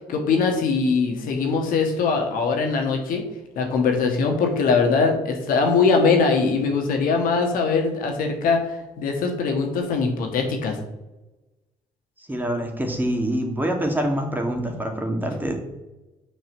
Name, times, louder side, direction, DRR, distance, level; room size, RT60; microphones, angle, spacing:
voice 1, 0.1-3.2 3.5-10.8, left 4 dB, 70° left, 3 dB, 1.8 m, -21 dB
voice 2, 12.3-15.5, right 1 dB, 10° right, 2 dB, 2.4 m, -25 dB
6.0 x 5.4 x 6.7 m, 1.0 s
hypercardioid pair, 60°, 15 cm